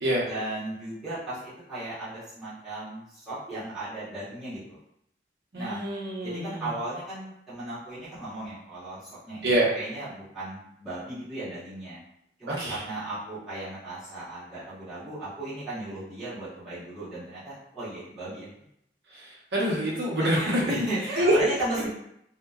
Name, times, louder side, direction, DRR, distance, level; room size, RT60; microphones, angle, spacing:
voice 1, 0.2-4.8 5.5-5.8 6.2-12.0 12.4-18.5 20.2-21.9, right 1 dB, ahead, -13 dB, 1.0 m, -36 dB
voice 2, 5.5-6.7 9.4-9.7 12.5-12.8 19.1-20.6 21.2-21.4, right 1 dB, 70° right, -4 dB, 0.8 m, -26 dB
2.8 x 2.1 x 2.3 m, 0.76 s
head